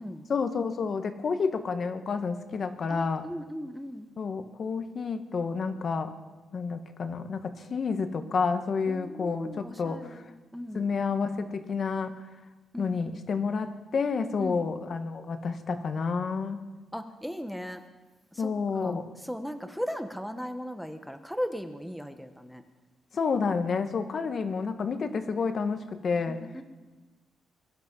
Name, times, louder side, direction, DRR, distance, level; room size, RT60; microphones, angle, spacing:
voice 1, 0.3-3.3 4.2-6.1 6.5-10.2 10.7-12.1 12.8-16.6 18.4-19.1 23.1-26.4, left 5 dB, 50° left, 8 dB, 1.5 m, -30 dB
voice 2, 2.9-4.1 8.9-10.9 12.7-13.2 14.4-14.7 16.9-17.8 18.3-22.6 26.3-26.6, equal, ahead, 8 dB, 1.2 m, -37 dB
22.5 x 11.5 x 5.5 m, 1.2 s
cardioid pair, 95°, 0 cm